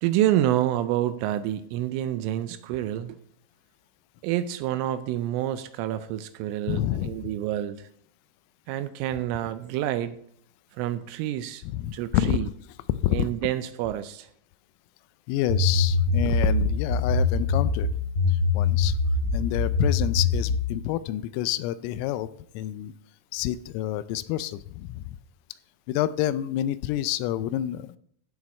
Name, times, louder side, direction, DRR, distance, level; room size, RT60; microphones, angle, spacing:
voice 1, 0.0-3.2 4.2-7.9 8.7-10.2 10.8-11.6 11.9-12.5 13.1-14.3, right 12 dB, 85° right, 11 dB, 2.9 m, -28 dB
voice 2, 6.7-7.3 11.6-12.5 12.9-13.3 15.3-17.9 18.3-19.0 19.3-22.3 22.5-22.9 23.3-25.2 25.9-28.0, left 13 dB, 85° left, 15 dB, 3.2 m, -28 dB
sound 1, 15.5-20.7, left 3 dB, 15° left, 3.3 m, -23 dB
15.5 x 7.1 x 4.3 m, 0.66 s
omnidirectional pair, 6.0 m